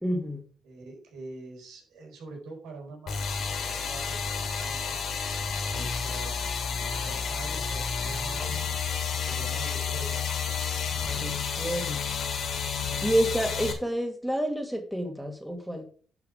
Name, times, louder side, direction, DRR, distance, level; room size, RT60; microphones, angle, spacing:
voice 1, 0.0-0.4 11.2-12.2 13.0-15.8, equal, ahead, 3 dB, 2.3 m, -29 dB
voice 2, 0.6-4.2 4.5-5.0 5.7-6.4 6.9-8.6 9.1-10.4, right 3 dB, 85° right, 1 dB, 4.4 m, -44 dB
sound 1, 3.1-13.7, left 6 dB, 60° left, 3.0 m, -31 dB
11.0 x 5.7 x 5.0 m, 0.42 s
cardioid pair, 90°, 0 cm